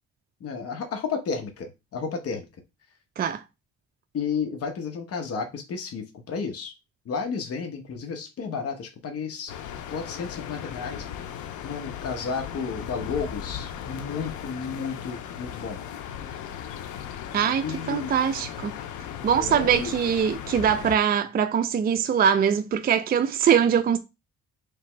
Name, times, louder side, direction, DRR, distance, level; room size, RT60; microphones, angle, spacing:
voice 1, 0.4-2.5 4.1-6.7 7.1-9.5 9.9-11.1 11.6-15.8 17.6-18.1 19.3-19.9, left 5 dB, 50° left, 0.9 m, -32 dB
sound 1, 9.5-21.0, left 9 dB, 85° left, 0.6 m, -37 dB
voice 2, 17.3-18.7 19.2-24.0, right 8 dB, 30° right, 0.4 m, -22 dB
3.3 x 2.9 x 4.4 m
cardioid pair, 90°, 30 cm